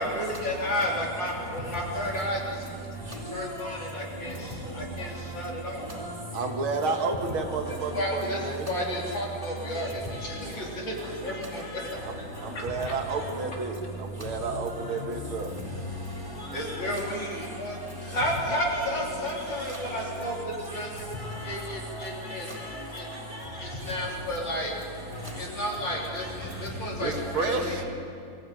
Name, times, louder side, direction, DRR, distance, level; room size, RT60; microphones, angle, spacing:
voice 1, 0.0-2.4 3.3-5.9 7.7-11.0 11.2-11.6 16.5-20.3 20.7-21.1 21.4-22.5 22.9-23.0 23.6-24.7 25.4-27.8, equal, 60° left, 4.2 m, -32 dB
voice 2, 3.1-3.8 4.6-4.9 5.1-5.2 5.8-6.1 6.8-7.1 9.1-9.2 9.7-9.9 10.2-10.4 11.3-12.0 12.3-12.6 14.7-15.1 16.1-17.5 18.5-18.9 19.3-20.3 20.7-20.8 21.2-21.6 21.8-23.8 25.2-25.4 25.8-26.3, equal, 15° right, 4.1 m, -38 dB
voice 3, 6.3-8.7 12.0-15.5 27.0-27.8, right 4 dB, 80° right, 2.4 m, -31 dB
23.5 x 15.5 x 9.3 m
omnidirectional pair, 2.3 m